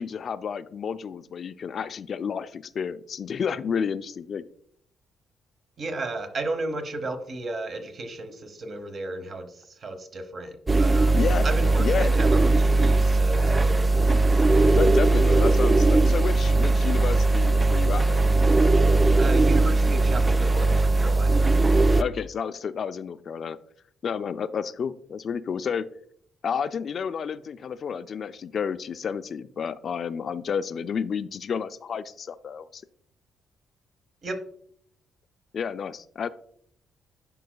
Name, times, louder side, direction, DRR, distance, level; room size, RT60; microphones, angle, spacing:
voice 1, 0.0-4.4 11.1-11.5 11.8-12.1 14.8-18.3 22.0-23.6 24.0-25.9 26.4-32.8 35.5-36.3, left 7 dB, 55° left, 13 dB, 0.4 m, -30 dB
voice 2, 5.8-14.4 19.2-21.5 34.2-34.4, right 2 dB, 50° right, 8 dB, 1.0 m, -34 dB
sound 1, 10.7-22.0, right 2 dB, 20° right, 0.3 m, -19 dB
10.5 x 4.6 x 2.3 m, 0.63 s
cardioid pair, 90°, 0 cm